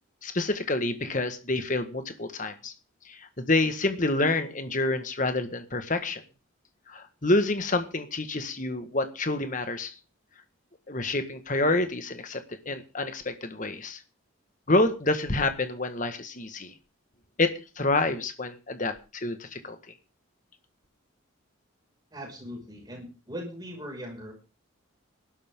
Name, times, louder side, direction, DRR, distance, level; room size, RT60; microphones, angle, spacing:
voice 1, 0.2-2.7 3.0-6.2 6.9-9.9 10.9-14.0 14.7-16.7 17.4-19.8, left 2 dB, 40° left, 9 dB, 1.6 m, -28 dB
voice 2, 22.1-24.3, equal, 20° right, 0 dB, 5.9 m, -39 dB
19.0 x 12.0 x 3.8 m, 0.32 s
head